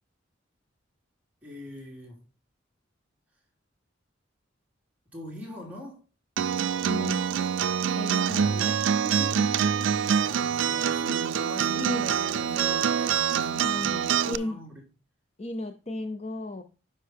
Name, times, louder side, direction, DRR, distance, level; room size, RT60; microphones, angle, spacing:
voice 1, 1.4-2.2 5.1-6.0 10.1-14.8, equal, 5° right, 3.5 m, -42 dB
Acoustic guitar, 6.4-14.4, right 7 dB, 75° right, 0.4 m, -25 dB
voice 2, 6.8-7.3 7.9-8.8 9.0-9.9 10.7-11.3 11.7-12.1 13.6-14.6 15.4-16.6, left 1 dB, 35° left, 0.7 m, -36 dB
10.0 x 5.8 x 3.6 m
head